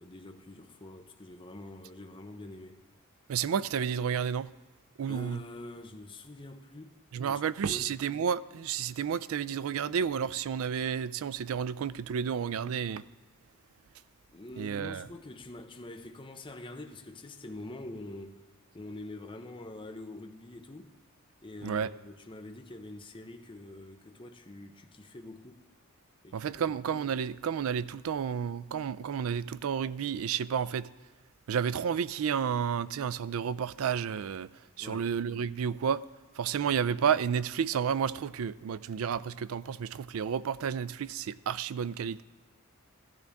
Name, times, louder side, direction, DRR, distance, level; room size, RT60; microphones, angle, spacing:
voice 1, 0.0-2.8 5.1-7.0 7.2-7.9 14.3-18.4 18.7-20.9 21.4-25.6 26.2-26.8 34.8-35.1, left 2 dB, 25° left, 0.7 m, -45 dB
voice 2, 3.3-4.5 5.0-5.4 7.1-13.0 14.6-15.1 21.6-21.9 26.3-30.9 31.5-34.5 34.8-36.0 36.4-42.2, right 7 dB, 70° right, 0.3 m, -31 dB
15.5 x 12.5 x 3.5 m
head